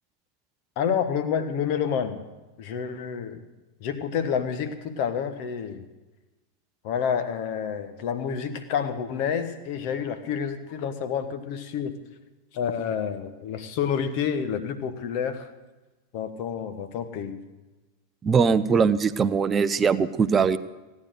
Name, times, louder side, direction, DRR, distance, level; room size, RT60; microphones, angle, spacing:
voice 1, 0.8-2.2 2.6-3.4 3.8-5.8 6.8-11.9 12.5-15.5 16.1-17.4, left 7 dB, 45° left, 10 dB, 1.3 m, -29 dB
voice 2, 18.2-20.6, right 5 dB, 20° right, 12 dB, 0.6 m, -21 dB
17.0 x 9.6 x 6.3 m, 1.1 s
figure-of-eight pair, 90°, 0 cm